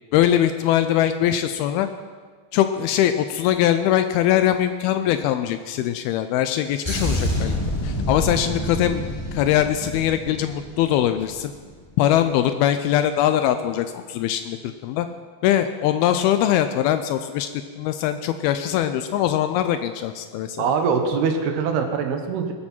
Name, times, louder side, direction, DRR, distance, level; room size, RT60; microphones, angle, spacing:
voice 1, 0.1-1.9 2.5-7.5 7.8-9.0 9.3-11.5 12.0-14.6 14.8-15.1 15.4-17.5 17.8-20.7, left 11 dB, 80° left, 9 dB, 2.5 m, -21 dB
sound 1, 6.8-11.4 11.7-12.0, left 1 dB, 30° left, 0.4 m, -27 dB
voice 2, 20.6-22.5, right 5 dB, 85° right, 5 dB, 3.2 m, -23 dB
20.0 x 14.5 x 4.5 m, 1.5 s
omnidirectional pair, 4.5 m